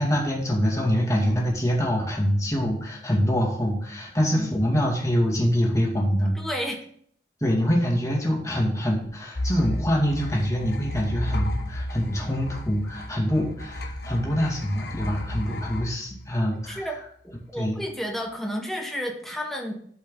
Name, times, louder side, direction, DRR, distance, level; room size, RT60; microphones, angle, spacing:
voice 1, 0.0-6.4 7.4-17.0 17.6-17.8, equal, 20° left, -2 dB, 2.2 m, -25 dB
voice 2, 6.3-6.8 16.7-17.0 17.2-19.8, equal, ahead, 1 dB, 1.3 m, -31 dB
sound 1, 9.3-16.9, left 1 dB, 65° left, 1.1 m, -33 dB
12.0 x 5.3 x 3.8 m, 0.62 s
head